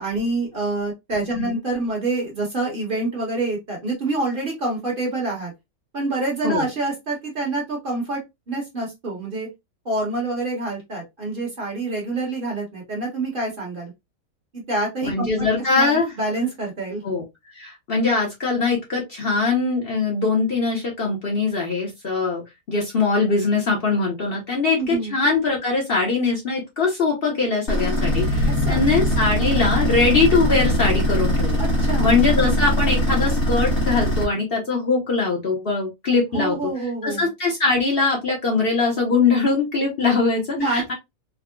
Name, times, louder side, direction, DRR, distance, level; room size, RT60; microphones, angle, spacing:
voice 1, 0.0-5.5 5.9-8.2 8.5-9.5 9.8-13.9 14.5-15.5 15.7-17.0 24.8-25.1 28.5-28.9 31.6-32.2 36.3-37.3 40.6-40.9, right 2 dB, 40° right, 1.1 m, -26 dB
voice 2, 15.0-16.1 17.0-17.2 17.6-22.4 22.7-31.6 32.0-36.6 37.0-40.9, left 4 dB, 50° left, 0.9 m, -22 dB
sound 1, 27.7-34.2, equal, 85° left, 1.4 m, -21 dB
3.6 x 2.0 x 2.2 m
omnidirectional pair, 1.5 m